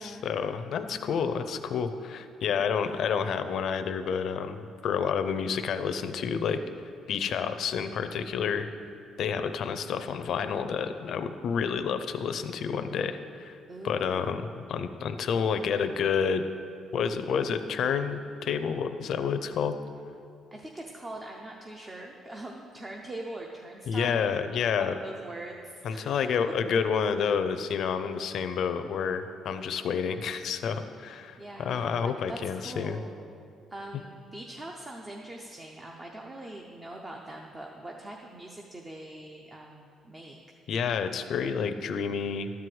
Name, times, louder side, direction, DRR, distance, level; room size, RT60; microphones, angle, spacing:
voice 1, 0.0-6.6 7.1-8.7 9.2-13.6 13.8-16.4 16.9-19.8 23.9-25.0 25.8-33.0 40.7-42.5, left 6 dB, 55° left, 9 dB, 0.6 m, -29 dB
voice 2, 13.7-14.4 20.5-24.3 24.7-26.3 31.4-33.1 33.7-40.4, right 1 dB, 20° right, 0 dB, 0.7 m, -42 dB
12.5 x 4.7 x 7.8 m, 2.4 s
cardioid pair, 145°, 0 cm